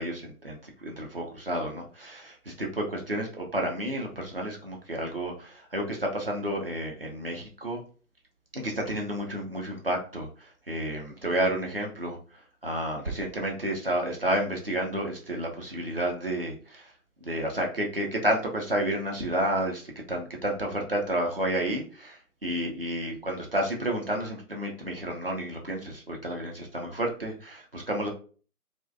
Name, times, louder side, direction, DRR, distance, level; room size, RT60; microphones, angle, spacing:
voice 1, 0.0-7.8 8.5-16.9 17.2-28.1, right 1 dB, 40° right, 1 dB, 0.5 m, -31 dB
2.4 x 2.1 x 2.4 m, 0.39 s
figure-of-eight pair, 145°, 45 cm